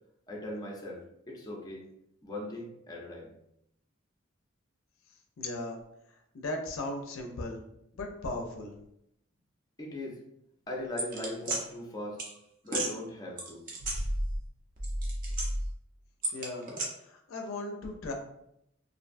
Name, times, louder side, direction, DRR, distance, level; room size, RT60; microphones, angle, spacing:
voice 1, 0.3-1.9 2.2-3.3 9.8-10.2 10.7-12.2 12.6-13.6, left 1 dB, 20° left, -2 dB, 0.5 m, -39 dB
voice 2, 5.4-5.8 6.3-7.6 7.9-8.7 16.3-16.7 17.1-18.1, left 2 dB, 85° left, 2 dB, 0.4 m, -37 dB
sound 1, 11.0-11.6 12.2-12.3 12.7-12.9 13.4-14.5 14.8-15.7 16.2-16.9, right 1 dB, 45° right, 0.6 m, -32 dB
2.5 x 2.1 x 2.5 m, 0.78 s
head